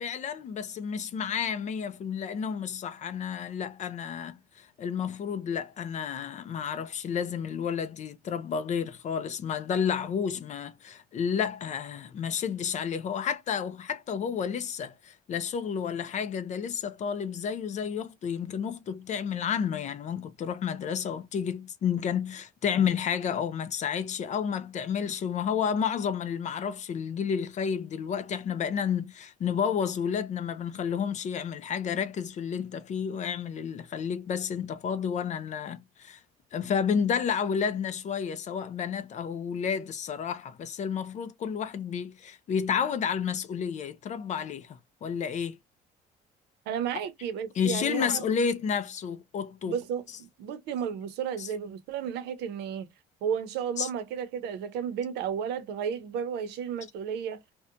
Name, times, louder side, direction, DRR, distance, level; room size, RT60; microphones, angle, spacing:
voice 1, 0.0-36.2 36.5-45.6 47.6-50.2 51.4-51.5 53.8-53.9, left 7 dB, 45° left, 0.5 m, -31 dB
voice 2, 46.7-48.3 49.7-52.9 53.2-57.4, right 8 dB, 85° right, 0.7 m, -33 dB
2.7 x 2.2 x 2.5 m
cardioid pair, 110°, 17 cm